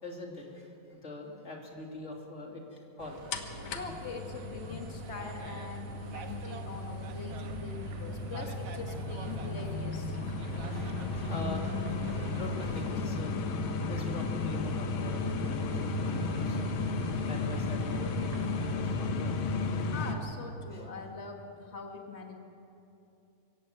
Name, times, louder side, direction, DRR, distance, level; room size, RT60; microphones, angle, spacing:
voice 1, 0.0-3.2 3.6-3.8 7.6-7.7 8.4-8.5 9.2-9.4 10.7-11.7 12.0-13.3 13.9-16.7 17.3-18.2 18.5-19.3 20.7-20.9, left 2 dB, 20° left, 0 dB, 2.5 m, -44 dB
sound 1, 3.0-12.9, right 4 dB, 60° right, 1.8 m, -46 dB
sound 2, 3.3-20.2, left 3 dB, 60° left, 2.4 m, -34 dB
sound 3, 3.4-18.8, right 2 dB, 80° right, 3.9 m, -50 dB
voice 2, 3.7-10.2 19.9-22.4, left 4 dB, 80° left, 2 dB, 0.6 m, -43 dB
24.5 x 16.5 x 7.9 m, 2.8 s
omnidirectional pair, 4.0 m